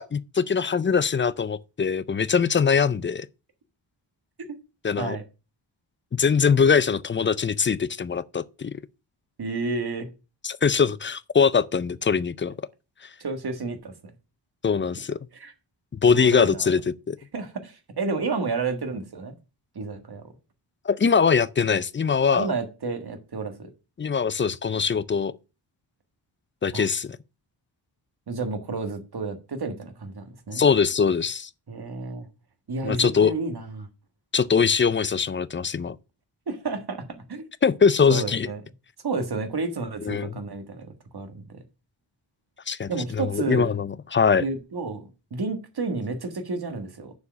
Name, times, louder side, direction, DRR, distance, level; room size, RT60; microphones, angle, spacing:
voice 1, 0.0-3.3 4.8-5.2 6.1-8.7 10.4-12.6 14.6-15.2 15.9-17.2 20.9-22.5 24.0-25.3 26.6-27.2 30.5-31.5 32.8-33.3 34.3-36.0 37.6-38.5 40.0-40.4 42.7-44.4, left 6 dB, 25° left, 0.4 m, -22 dB
voice 2, 9.4-10.1 13.2-13.9 15.3-15.5 16.1-16.7 17.3-19.3 19.7-20.2 22.3-23.7 26.7-26.9 28.3-30.6 31.7-32.3 32.7-33.9 36.5-37.5 38.1-38.6 39.0-41.6 42.9-43.7 44.4-47.1, right 3 dB, 50° right, 1.6 m, -31 dB
6.9 x 4.7 x 6.2 m
wide cardioid pair, 115°, 47 cm